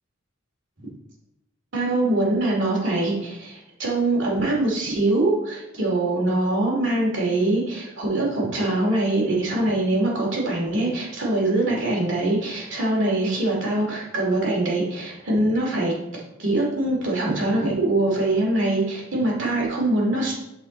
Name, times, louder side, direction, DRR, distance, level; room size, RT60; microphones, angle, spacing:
voice 1, 1.7-20.3, right 2 dB, 65° right, -3 dB, 2.6 m, -23 dB
8.7 x 4.9 x 4.2 m, 0.91 s
head